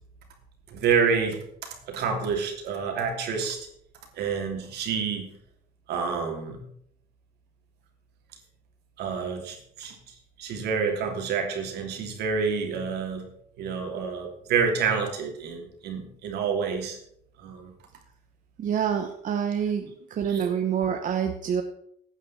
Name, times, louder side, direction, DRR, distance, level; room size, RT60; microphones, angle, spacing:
voice 1, 0.7-1.4 1.9-3.6 4.2-5.3 5.9-6.6 9.0-10.0 10.4-13.3 13.6-17.0 17.4-17.7 20.3-20.5, right 6 dB, 75° right, 3 dB, 2.9 m, -28 dB
voice 2, 18.6-21.6, right 8 dB, 50° right, 5 dB, 1.1 m, -27 dB
15.5 x 9.1 x 4.2 m, 0.70 s
cardioid pair, 110°, 17 cm